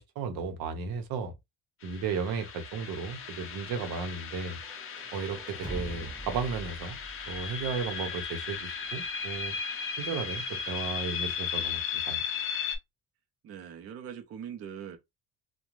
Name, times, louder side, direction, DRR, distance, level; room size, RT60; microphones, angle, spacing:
voice 1, 0.0-1.3 1.8-4.6 5.1-7.0 7.3-9.5 10.0-12.2, right 5 dB, 85° right, 0.8 m, -34 dB
sound 1, 1.8-12.8, left 7 dB, 40° left, 0.5 m, -36 dB
sound 2, 4.6-8.5, right 1 dB, 15° right, 0.7 m, -43 dB
voice 2, 13.4-15.0, right 8 dB, 45° right, 0.5 m, -41 dB
2.4 x 2.1 x 3.0 m
cardioid pair, 150°, 35 cm